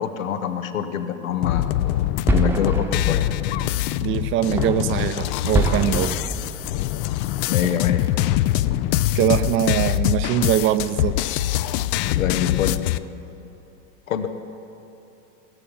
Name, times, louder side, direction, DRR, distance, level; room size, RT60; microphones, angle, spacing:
voice 1, 0.0-1.7 2.3-3.3 7.5-8.1 8.7-8.8 12.2-12.8 14.1-14.3, left 9 dB, 85° left, 8 dB, 1.1 m, -25 dB
sound 1, 1.4-13.0, left 14 dB, 45° left, 0.4 m, -24 dB
sound 2, 1.9-9.8 10.1-10.6 11.0-11.1 11.4-11.5 12.0-12.4, equal, 5° right, 0.9 m, -28 dB
voice 2, 4.0-6.1 7.6-7.8 9.1-11.2, right 11 dB, 30° right, 13 dB, 0.6 m, -22 dB
17.5 x 7.3 x 8.6 m, 2.9 s
hypercardioid pair, 115°, 39 cm